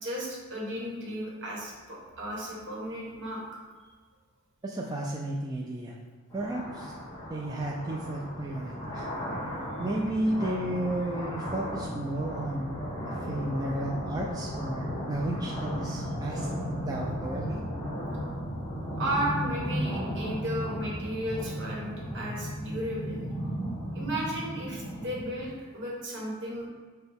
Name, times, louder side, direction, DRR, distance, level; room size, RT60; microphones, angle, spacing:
voice 1, 0.0-3.4 19.0-23.2 23.9-26.7, right 1 dB, 55° right, -3 dB, 1.1 m, -34 dB
voice 2, 4.6-5.9 6.3-6.9 7.3-9.0 9.8-17.6, right 1 dB, 15° right, -2 dB, 0.3 m, -33 dB
sound 1, 6.3-25.5, equal, 20° left, 1.0 m, -35 dB
6.1 x 2.2 x 3.4 m, 1.5 s
head